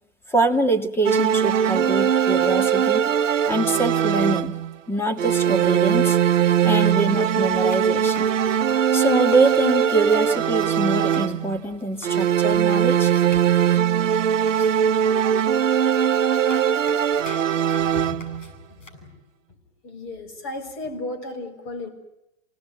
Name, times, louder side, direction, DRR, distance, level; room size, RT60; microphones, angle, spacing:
voice 1, 0.3-3.0 3.5-4.6 4.9-6.2 6.6-8.3 8.9-13.1, right 2 dB, 5° left, 6 dB, 2.1 m, -24 dB
sound 1, 1.0-4.8 5.2-11.6 12.0-18.5, right 9 dB, 80° right, 1.0 m, -21 dB
sound 2, 6.8-6.9 7.1-7.2 7.6-9.6 10.0-11.4 11.8-12.4 12.8-13.5 14.5-15.0 15.9-16.0 16.4-18.9, left 3 dB, 85° left, 6.8 m, -45 dB
voice 2, 17.8-19.1 19.5-19.6 19.8-21.9, left 2 dB, 35° left, 5 dB, 6.7 m, -35 dB
28.0 x 18.5 x 9.3 m, 0.89 s
hypercardioid pair, 125°, 37 cm